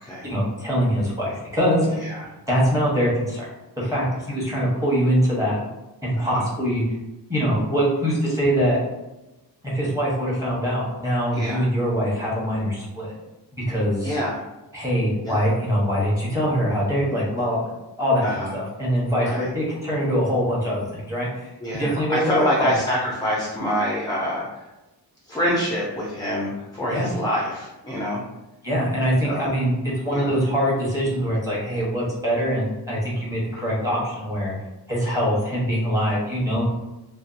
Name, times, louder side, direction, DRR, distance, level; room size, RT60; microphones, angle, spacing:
voice 1, 0.2-2.0 2.5-3.5 3.8-5.6 6.0-6.8 7.3-8.8 9.7-13.1 13.6-14.1 14.7-17.6 18.0-18.2 18.5-21.3 21.7-22.8 26.9-27.1 28.6-29.8 30.0-34.5 34.9-36.6, equal, 10° right, -7 dB, 0.8 m, -23 dB
voice 2, 1.9-2.3 6.1-6.4 11.3-11.6 14.0-14.4 15.2-15.5 18.2-18.5 19.2-19.5 21.6-24.7 25.3-28.2 29.2-29.5 30.1-30.4, equal, 10° left, -4 dB, 0.3 m, -26 dB
2.6 x 2.2 x 2.4 m, 1.0 s
wide cardioid pair, 135°, 41 cm